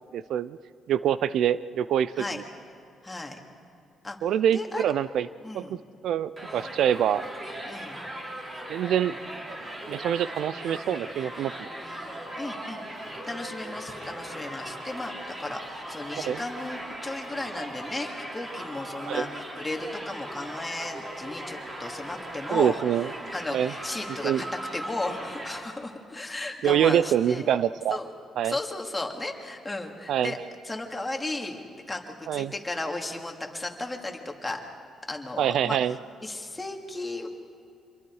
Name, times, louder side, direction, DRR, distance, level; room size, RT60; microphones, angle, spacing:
voice 1, 0.1-0.6 0.9-2.4 4.2-5.3 5.5-5.8 6.0-7.2 8.7-9.2 9.9-11.7 16.2-16.4 19.1-19.3 22.5-23.1 23.5-23.7 24.2-24.4 26.6-28.0 28.4-28.5 30.1-30.3 32.3-32.5 35.4-35.9, right 10 dB, 75° right, 16 dB, 0.5 m, -25 dB
voice 2, 3.0-3.4 4.0-4.2 4.5-4.8 5.4-5.8 7.6-8.0 12.4-12.8 13.3-22.8 23.3-24.4 24.7-27.5 27.9-28.1 28.4-30.4 30.6-31.6 31.9-34.6 35.1-37.3, left 2 dB, 15° left, 2 dB, 2.6 m, -35 dB
Crowd, 6.4-25.6, right 1 dB, 30° right, 4.4 m, -38 dB
27.0 x 22.5 x 4.8 m, 2.7 s
cardioid pair, 90°, 0 cm